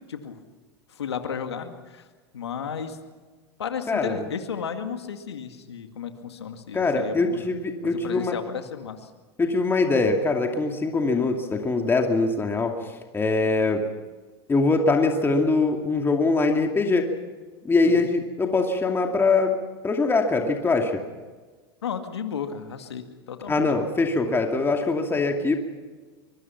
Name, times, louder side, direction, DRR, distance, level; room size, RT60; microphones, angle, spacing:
voice 1, 0.9-2.1 2.3-3.0 3.6-7.5 7.8-9.1 17.8-18.1 21.8-23.7, left 7 dB, 90° left, 6 dB, 2.1 m, -33 dB
voice 2, 3.9-4.2 6.7-8.3 9.4-13.8 14.5-17.1 17.6-19.6 19.8-21.0 23.5-25.6, left 3 dB, 15° left, 3 dB, 2.5 m, -23 dB
24.5 x 22.5 x 5.9 m, 1.4 s
hypercardioid pair, 100°, 13 cm